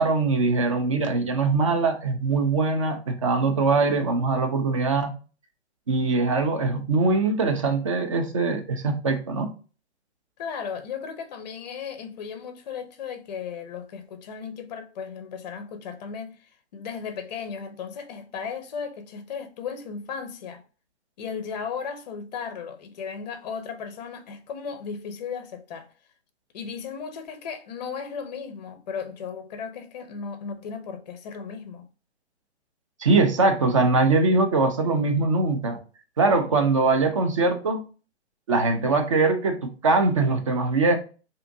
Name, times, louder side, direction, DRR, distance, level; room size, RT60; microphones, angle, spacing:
voice 1, 0.0-5.1 5.9-9.5 33.0-35.8 36.2-37.8 38.5-41.0, right 3 dB, 30° right, 0.4 m, -22 dB
voice 2, 10.4-20.6 21.2-25.9 26.5-31.9, left 6 dB, 40° left, 0.5 m, -35 dB
2.6 x 2.4 x 3.6 m
hypercardioid pair, 140°, 35 cm